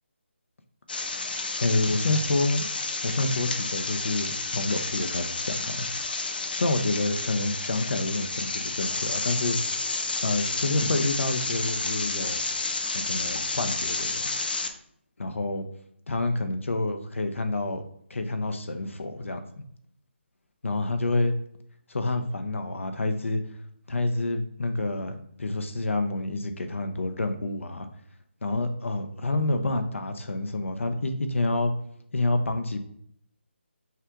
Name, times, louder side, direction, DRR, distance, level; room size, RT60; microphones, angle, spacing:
sound 1, 0.9-14.7, left 3 dB, 45° left, 0.5 m, -31 dB
voice 1, 1.6-2.6 3.0-5.9 6.5-9.6 10.2-12.4 12.9-14.3 15.2-15.7 16.1-17.8 18.1-19.4 20.6-21.3 21.9-23.4 23.9-27.9 28.4-31.7 32.1-32.8, left 2 dB, 85° left, 7 dB, 0.7 m, -28 dB
5.6 x 2.4 x 3.5 m, 0.68 s
hypercardioid pair, 180°, 7 cm